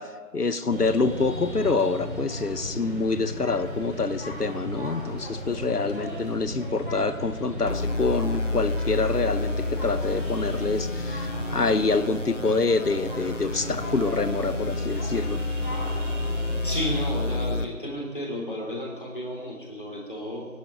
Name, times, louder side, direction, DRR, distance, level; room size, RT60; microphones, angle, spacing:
voice 1, 0.0-15.4, left 4 dB, 85° left, 12 dB, 1.1 m, -26 dB
sound 1, 0.7-17.0, equal, 35° right, 3.1 m, -35 dB
sound 2, 7.7-17.7, left 2 dB, 55° left, 0.7 m, -30 dB
voice 2, 16.6-20.5, equal, 35° left, -2 dB, 3.1 m, -32 dB
19.0 x 12.0 x 5.4 m, 1.3 s
figure-of-eight pair, 180°, 45 cm